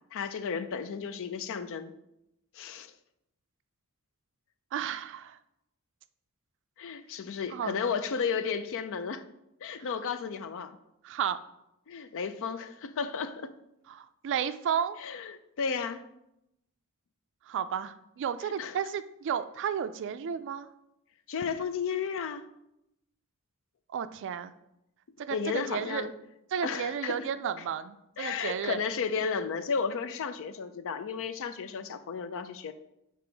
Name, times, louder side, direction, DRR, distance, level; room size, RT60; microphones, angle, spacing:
voice 1, 0.0-1.9 2.5-2.9 6.8-9.2 9.6-10.8 11.9-13.5 15.0-16.0 18.4-18.8 21.3-22.5 25.3-26.1 26.6-27.3 28.2-32.7, left 6 dB, 65° left, 10 dB, 0.4 m, -33 dB
voice 2, 4.7-5.4 7.5-7.8 11.0-11.4 13.9-15.0 17.5-20.7 23.9-24.5 25.2-26.1 26.5-28.8, right 8 dB, 55° right, 12 dB, 0.3 m, -33 dB
6.9 x 3.0 x 4.6 m, 0.84 s
head